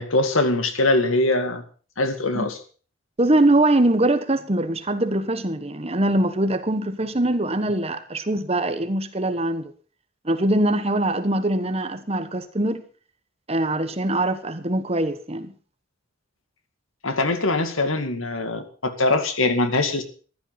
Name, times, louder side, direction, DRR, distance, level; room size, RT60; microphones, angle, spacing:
voice 1, 0.0-1.6 2.0-2.5 17.0-20.0, left 2 dB, 85° left, 2.2 m, -22 dB
voice 2, 3.2-9.7 10.2-12.8 13.5-15.5, right 1 dB, 30° right, 1.2 m, -22 dB
14.5 x 11.5 x 5.8 m
head